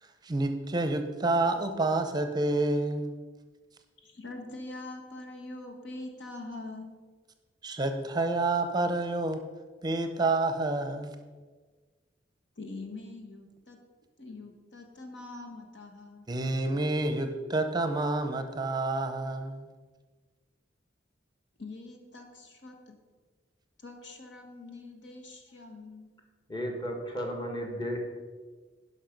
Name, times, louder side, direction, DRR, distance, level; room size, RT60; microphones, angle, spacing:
voice 1, 0.0-3.2 7.6-9.4 9.8-11.1 16.3-19.7, right 2 dB, 25° right, 8 dB, 0.6 m, -29 dB
voice 2, 4.0-6.9 12.6-13.8 14.2-16.3 21.6-23.0 23.8-26.1, left 2 dB, 80° left, 3 dB, 1.5 m, -44 dB
voice 3, 26.5-28.0, equal, 25° left, 2 dB, 1.7 m, -34 dB
12.0 x 5.4 x 5.2 m, 1.4 s
head